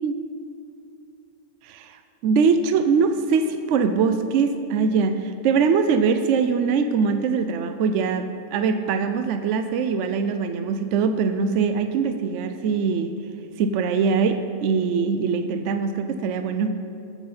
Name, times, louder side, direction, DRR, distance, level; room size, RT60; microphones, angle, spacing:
voice 1, 1.6-13.1 13.6-16.7, right 5 dB, 70° right, 9 dB, 0.7 m, -22 dB
15.5 x 6.1 x 5.5 m, 2.7 s
omnidirectional pair, 1.8 m